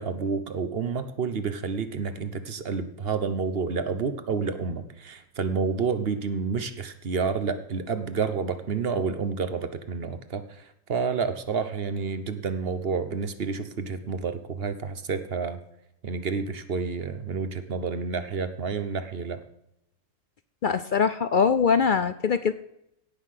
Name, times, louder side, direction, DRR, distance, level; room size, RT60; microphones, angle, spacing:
voice 1, 0.0-10.4 10.9-15.6 16.0-19.4, right 5 dB, 50° right, 10 dB, 1.1 m, -29 dB
voice 2, 20.6-22.5, left 6 dB, 55° left, 12 dB, 0.5 m, -22 dB
17.0 x 5.9 x 6.6 m, 0.79 s
omnidirectional pair, 1.4 m